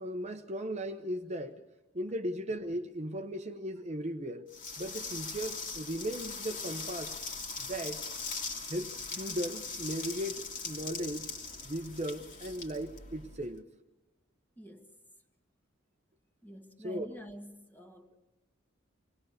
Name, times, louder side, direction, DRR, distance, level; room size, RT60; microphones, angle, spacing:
voice 1, 0.0-1.6 1.9-4.5 4.8-7.1 7.6-8.0 8.7-11.3 11.6-13.6 16.8-17.1, equal, 35° right, 1.0 m, -37 dB
sound 1, 4.5-13.5, left 4 dB, 40° left, 2.3 m, -40 dB
voice 2, 14.6-14.9 16.4-18.1, right 1 dB, 10° left, 1.6 m, -48 dB
25.5 x 19.5 x 6.6 m
head